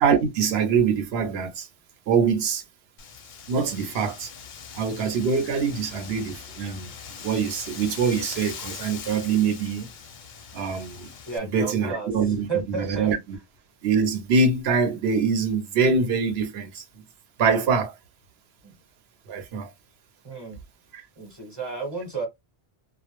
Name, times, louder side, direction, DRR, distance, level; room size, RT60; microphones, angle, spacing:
voice 1, 0.0-1.7 2.1-2.6 3.5-4.3 4.7-6.9 7.2-9.9 10.5-11.1 11.5-13.4 13.8-16.8 17.4-17.9 19.3-19.7 20.9-21.0, right 5 dB, 75° right, 0.9 m, -24 dB
Wind, 3.0-11.4, left 7 dB, 60° left, 0.6 m, -41 dB
voice 2, 11.3-12.1 12.5-13.1 18.6-18.7 20.2-20.6 21.2-22.3, right 4 dB, 25° right, 0.9 m, -32 dB
2.1 x 2.0 x 2.9 m
omnidirectional pair, 1.1 m